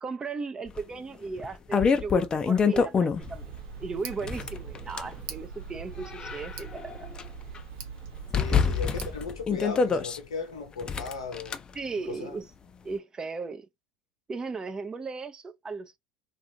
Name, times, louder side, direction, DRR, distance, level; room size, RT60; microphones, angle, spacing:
voice 1, 0.0-7.1 8.3-8.8 11.7-12.4 12.8-13.7 14.3-16.0, right 4 dB, 25° right, 0.6 m, -36 dB
sound 1, 0.8-0.9 1.4-3.4 4.1-5.1 5.8-7.2 7.5-7.6 8.3-10.2 10.8-11.6, left 5 dB, 25° left, 0.4 m, -26 dB
Tick, 3.2-9.2, right 7 dB, 65° right, 0.8 m, -42 dB
voice 2, 8.3-11.6 12.1-12.4, left 4 dB, 85° left, 0.8 m, -37 dB
2.5 x 2.5 x 2.6 m
hypercardioid pair, 75°, 3 cm